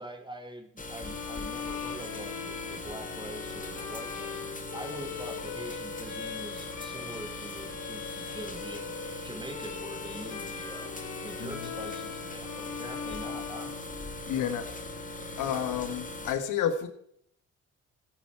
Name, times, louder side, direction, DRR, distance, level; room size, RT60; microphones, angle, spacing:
voice 1, 0.0-4.4 4.7-8.9 9.2-10.8 11.2-13.7, right 1 dB, 15° right, 5 dB, 1.6 m, -44 dB
sound 1, 0.8-16.3, left 2 dB, 25° left, 1.9 m, -40 dB
Bowed string instrument, 1.0-14.5, left 8 dB, 65° left, 1.3 m, -41 dB
voice 2, 14.3-14.7 15.4-16.9, left 9 dB, 85° left, 10 dB, 1.4 m, -30 dB
14.5 x 9.1 x 4.7 m, 0.70 s
cardioid pair, 90°, 30 cm